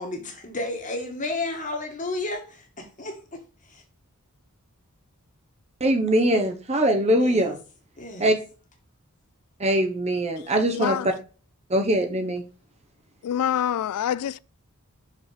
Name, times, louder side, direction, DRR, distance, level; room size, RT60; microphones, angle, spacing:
voice 1, 0.0-3.8 7.2-7.6 8.0-8.3, left 2 dB, 35° left, 2.0 m, -33 dB
voice 2, 5.8-7.6 8.2-8.4 9.6-11.1 11.7-12.4, right 1 dB, 30° right, 1.1 m, -22 dB
voice 3, 10.8-11.1 13.2-14.4, left 10 dB, 85° left, 0.3 m, -26 dB
6.3 x 5.2 x 5.1 m
head